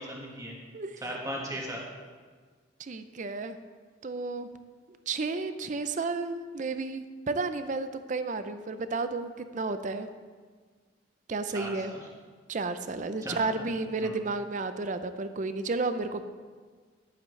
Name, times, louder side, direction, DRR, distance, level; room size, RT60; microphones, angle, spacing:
voice 1, 0.0-0.6 1.0-1.8 11.5-12.0 13.2-13.4 14.0-14.1, equal, 15° right, -3 dB, 1.6 m, -37 dB
voice 2, 2.8-3.6 4.0-4.5 5.1-10.1 11.3-11.9 12.5-16.2, right 3 dB, 40° right, 10 dB, 0.5 m, -32 dB
10.5 x 9.2 x 3.2 m, 1.5 s
head